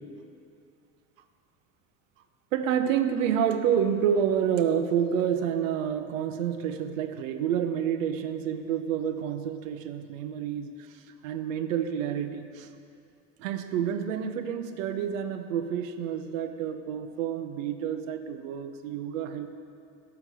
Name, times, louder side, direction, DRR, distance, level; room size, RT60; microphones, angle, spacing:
voice 1, 2.5-12.7 13.4-19.5, right 8 dB, 80° right, 9 dB, 0.9 m, -29 dB
12.5 x 4.5 x 8.3 m, 2.5 s
hypercardioid pair, 80°, 39 cm